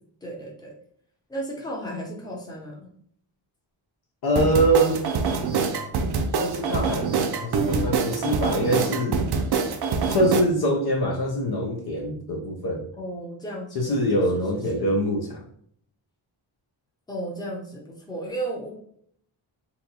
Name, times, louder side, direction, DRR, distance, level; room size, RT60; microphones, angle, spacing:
voice 1, 0.2-0.7 1.3-2.9 13.0-14.1 14.3-14.9 17.1-18.7, right 1 dB, 10° left, -2 dB, 0.7 m, -34 dB
voice 2, 4.2-5.1 6.4-9.3 10.1-12.9 13.7-15.4, right 1 dB, 55° left, 2 dB, 0.6 m, -24 dB
sound 1, 4.4-10.4, right 5 dB, 55° right, 0.5 m, -25 dB
2.7 x 2.2 x 4.0 m, 0.64 s
wide cardioid pair, 155°, 46 cm